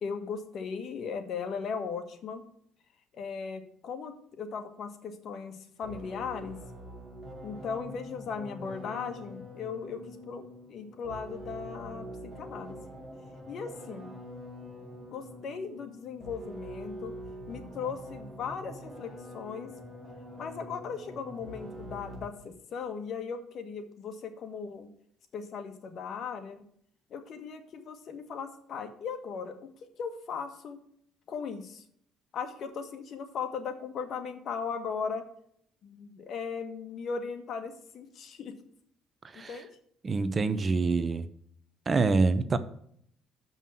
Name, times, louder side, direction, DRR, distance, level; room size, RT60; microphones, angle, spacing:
voice 1, 0.0-2.4 3.1-6.6 7.4-12.8 13.5-14.1 15.1-17.1 17.5-19.7 20.4-24.9 25.3-26.6 27.1-29.7 30.0-30.8 31.3-31.8 32.3-35.3 35.8-38.5 39.3-39.7, left 6 dB, 55° left, 7 dB, 1.5 m, -38 dB
sound 1, 5.8-22.5, equal, 5° right, 3.9 m, -45 dB
voice 2, 40.0-41.3 41.9-42.6, right 4 dB, 30° right, 13 dB, 0.7 m, -26 dB
7.2 x 5.6 x 7.5 m, 0.67 s
cardioid pair, 120°, 0 cm